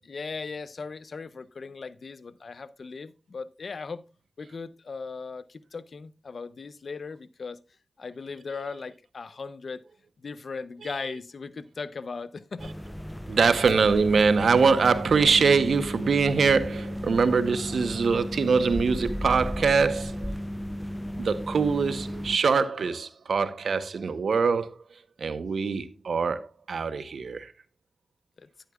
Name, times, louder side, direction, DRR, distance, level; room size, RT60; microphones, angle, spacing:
voice 1, 0.0-4.0 4.4-7.6 8.0-9.8 10.2-12.8 28.4-28.5, left 4 dB, 75° left, 0.7 m, -38 dB
sound 1, 12.6-22.4, equal, 10° left, 0.4 m, -34 dB
voice 2, 13.3-20.3 21.2-24.7 25.2-26.4 26.7-27.5, right 5 dB, 90° right, 0.8 m, -23 dB
11.5 x 10.5 x 2.3 m
cardioid pair, 45°, 0 cm